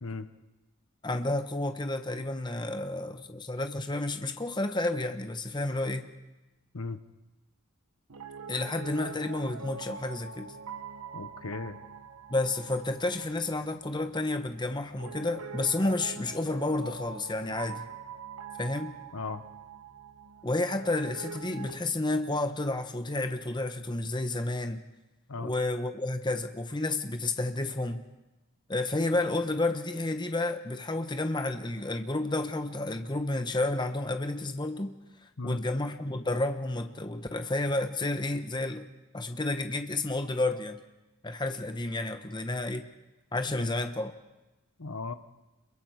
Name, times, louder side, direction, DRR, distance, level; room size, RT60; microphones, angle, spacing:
voice 1, 1.0-6.1 8.5-10.5 12.3-17.8 18.6-18.9 20.4-24.8 25.4-28.0 28.7-35.0 35.4-38.9 39.1-40.8 41.2-42.9 43.3-44.1, left 2 dB, 20° left, 7 dB, 1.0 m, -31 dB
Piano, 8.1-21.8, right 6 dB, 80° right, 1.1 m, -44 dB
voice 2, 11.1-11.8 19.1-19.4 25.3-25.5 35.4-35.6 43.6-43.7 44.8-45.1, left 3 dB, 75° left, 11 dB, 1.0 m, -36 dB
27.0 x 22.5 x 4.8 m, 1.0 s
head